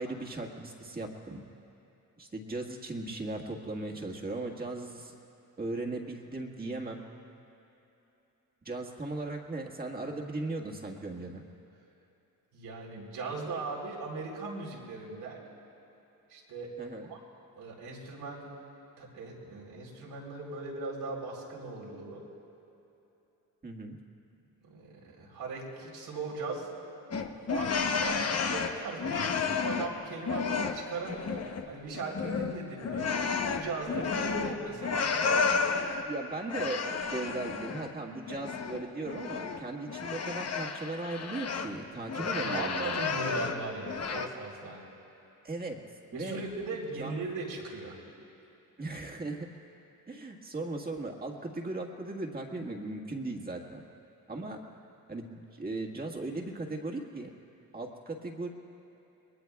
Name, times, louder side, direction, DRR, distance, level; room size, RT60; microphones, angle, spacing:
voice 1, 0.0-1.4 2.2-5.1 5.6-7.0 8.6-11.4 16.8-17.1 23.6-24.0 36.0-43.0 45.4-45.8 46.1-46.4 47.0-47.1 48.8-49.5 50.1-53.8 54.3-54.6 55.1-57.3 57.7-58.5, right 2 dB, 25° right, 0 dB, 1.7 m, -37 dB
voice 2, 12.5-15.5 16.3-16.7 17.1-17.2 17.6-18.5 19.0-22.2 24.6-26.7 27.4-31.4 31.7-33.2 33.5-35.1 42.3-44.8 46.1-48.0, right 3 dB, 85° right, -3 dB, 3.9 m, -39 dB
sound 1, 27.1-30.0 30.3-31.7 31.9-36.0 36.5-37.9 38.3-41.7 42.1-43.6 43.8-44.3, left 5 dB, 45° left, 1.0 m, -31 dB
28.0 x 21.5 x 2.4 m, 3.0 s
cardioid pair, 115°, 37 cm